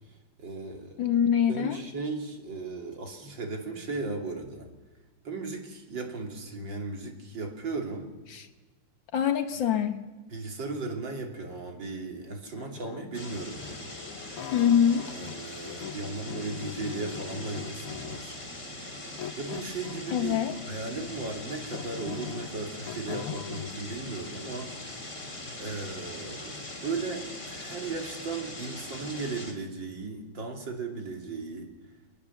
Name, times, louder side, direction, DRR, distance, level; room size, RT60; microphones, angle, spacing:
voice 1, 0.4-1.0 1.5-4.7 5.2-8.1 10.3-13.9 15.0-18.4 19.4-20.4 20.7-24.7 25.6-31.7, right 3 dB, 60° right, 2 dB, 3.4 m, -36 dB
voice 2, 1.0-1.8 8.3-8.5 9.1-10.0 14.5-15.1 20.1-20.5, left 8 dB, 65° left, 9 dB, 1.7 m, -24 dB
sound 1, 12.5-15.4 15.7-18.4 19.2-20.8 21.2-23.7, left 9 dB, 85° left, 1.9 m, -41 dB
sound 2, 13.1-29.5, left 1 dB, 25° left, 3.0 m, -41 dB
24.0 x 20.0 x 7.1 m, 1.2 s
omnidirectional pair, 2.4 m